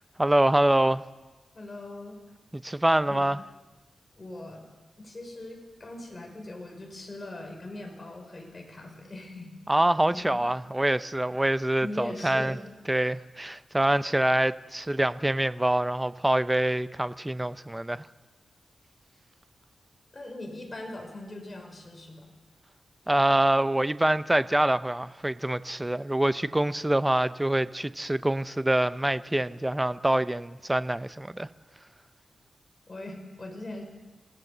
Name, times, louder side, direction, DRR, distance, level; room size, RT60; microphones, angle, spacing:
voice 1, 0.2-1.0 2.5-3.4 9.7-12.6 12.9-18.0 23.1-31.5, right 1 dB, 15° right, 0.6 m, -25 dB
voice 2, 1.5-2.2 3.1-3.3 4.2-4.6 5.0-9.6 10.1-10.4 11.8-12.6 20.1-22.3 32.9-33.8, left 2 dB, 30° left, 5.7 m, -40 dB
27.5 x 17.5 x 6.8 m
wide cardioid pair, 95°, 0 cm